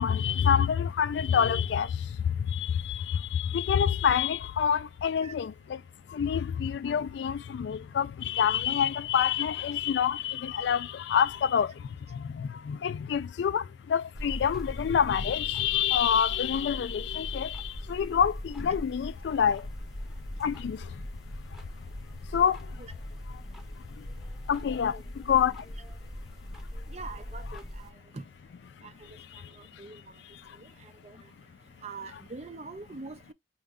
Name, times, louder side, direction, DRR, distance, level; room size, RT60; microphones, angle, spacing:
voice 1, 0.0-1.9 2.5-5.5 6.1-11.7 12.7-13.6 13.9-17.6 17.9-19.6 20.4-20.8 22.3-22.6 24.5-25.0 25.3-25.5, left 8 dB, 70° left, 0.3 m, -26 dB
sound 1, 14.1-27.9, equal, ahead, 0.8 m, -40 dB
voice 2, 26.9-27.6 28.1-28.2 29.8-30.0 31.0-31.2 31.8-33.3, right 4 dB, 35° right, 0.5 m, -42 dB
5.0 x 2.2 x 3.6 m
head